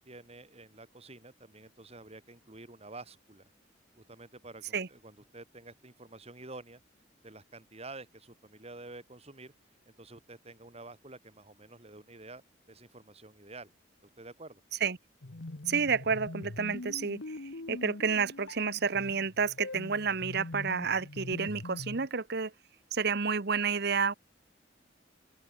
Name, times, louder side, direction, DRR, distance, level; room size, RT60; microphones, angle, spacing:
voice 1, 0.0-3.4 4.0-6.8 7.2-9.5 9.8-12.4 12.7-13.7 14.2-14.6, right 2 dB, 35° right, 3.3 m, -49 dB
sound 1, 15.2-22.1, left 2 dB, 70° left, 1.3 m, -43 dB
voice 2, 15.7-17.4 17.7-22.5 22.9-24.1, right 5 dB, 55° right, 1.0 m, -30 dB
open air
head